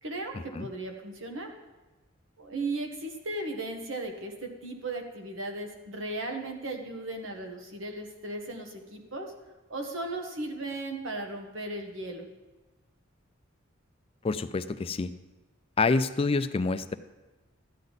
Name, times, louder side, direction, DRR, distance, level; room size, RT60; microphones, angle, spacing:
voice 1, 0.0-1.5 2.4-9.3 9.7-12.3, right 2 dB, 75° right, 3 dB, 1.5 m, -36 dB
voice 2, 14.2-15.1 15.8-17.0, left 4 dB, 30° left, 12 dB, 0.4 m, -27 dB
13.0 x 9.2 x 4.1 m, 1.2 s
head